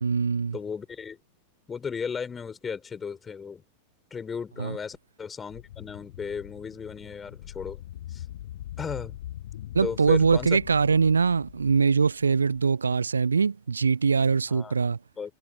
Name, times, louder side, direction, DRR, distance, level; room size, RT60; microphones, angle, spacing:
voice 1, 0.0-0.6 4.6-4.8 9.7-15.0, right 5 dB, 75° right, 0.5 m, -23 dB
voice 2, 0.5-1.2 1.7-3.6 4.1-7.8 8.1-8.3 8.8-9.2 9.8-10.6 14.5-14.8 15.2-15.3, left 6 dB, 20° left, 5.2 m, -35 dB
sound 1, 5.5-12.6, left 12 dB, 60° left, 6.5 m, -42 dB
figure-of-eight pair, 90°, 0 cm